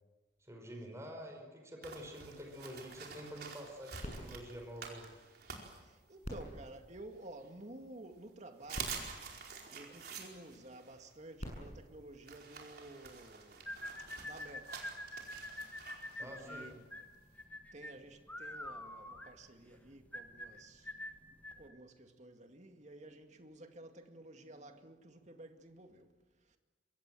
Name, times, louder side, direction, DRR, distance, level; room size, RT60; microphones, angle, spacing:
voice 1, 0.5-5.1 16.2-16.7, equal, 15° right, 4.9 m, -47 dB
sound 1, 1.8-6.5 6.9-7.9 8.2-8.3 8.6-17.4, right 6 dB, 60° right, 4.7 m, -49 dB
sound 2, 4.0-5.6 6.2-7.8 8.4-8.5 8.7-10.3 11.1-13.0 13.7-13.8, equal, 40° left, 7.7 m, -49 dB
voice 2, 5.8-9.1 9.7-13.8 14.2-14.8 16.2-16.8 17.7-20.9 21.6-26.2 26.5-26.6, right 2 dB, 40° right, 2.2 m, -52 dB
sound 3, 13.7-21.7, left 1 dB, 10° left, 1.7 m, -46 dB
27.0 x 23.5 x 7.7 m
head